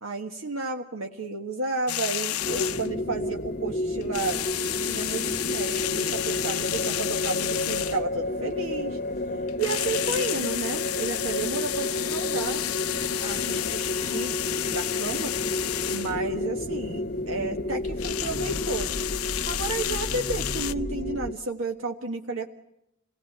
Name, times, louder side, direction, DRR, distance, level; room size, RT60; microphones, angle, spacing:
voice 1, 0.0-4.4 4.8-9.0 9.6-12.6 13.2-15.3 15.9-19.0 19.5-22.5, right 3 dB, 65° right, 3 dB, 1.6 m, -32 dB
sound 1, 1.9-3.0 4.0-8.2 9.5-16.2 17.8-20.7, left 13 dB, 85° left, 0.9 m, -31 dB
sound 2, 2.4-21.3, left 1 dB, 40° left, 1.1 m, -31 dB
27.5 x 19.0 x 8.1 m, 0.86 s
head